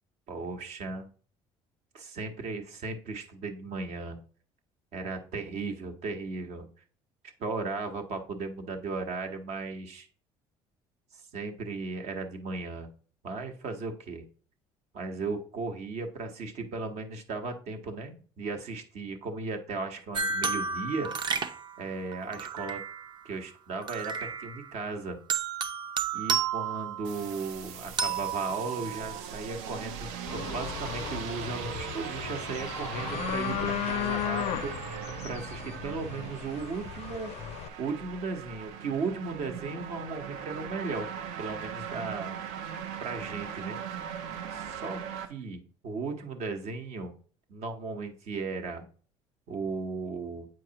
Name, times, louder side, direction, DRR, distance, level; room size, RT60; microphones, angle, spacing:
voice 1, 0.3-1.1 1.9-4.2 4.9-6.7 7.4-10.1 11.1-12.9 13.2-14.2 14.9-21.5 21.8-22.8 23.2-25.2 26.1-34.9 35.2-37.3 37.8-41.1 41.4-42.4 43.0-44.1 44.5-47.1 47.5-48.9 49.5-50.5, right 4 dB, 65° right, 5 dB, 1.1 m, -36 dB
sound 1, 20.1-23.2 23.8-24.8 25.3-27.5 28.0-29.2, right 6 dB, 40° right, 0.6 m, -32 dB
sound 2, 27.0-45.3, right 8 dB, 80° right, 0.6 m, -39 dB
sound 3, 30.3-37.7, left 12 dB, 60° left, 0.4 m, -36 dB
7.7 x 4.6 x 2.8 m, 0.42 s
supercardioid pair, 90°, 12 cm